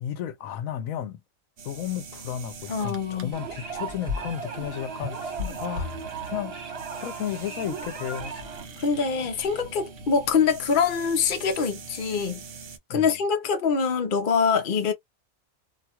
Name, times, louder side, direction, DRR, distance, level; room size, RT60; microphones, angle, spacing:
voice 1, 0.0-1.2 1.6-5.3 5.6-5.9 6.3-6.6 7.0-8.4 12.9-13.1, left 10 dB, 80° left, 1.0 m, -33 dB
sound 1, 1.6-12.8, right 4 dB, 65° right, 1.0 m, -43 dB
voice 2, 2.7-3.3 5.4-5.5 8.8-12.4 12.9-14.9, left 6 dB, 45° left, 0.7 m, -24 dB
sound 2, 3.3-8.7, right 1 dB, 45° right, 1.4 m, -35 dB
2.7 x 2.2 x 2.9 m
omnidirectional pair, 1.4 m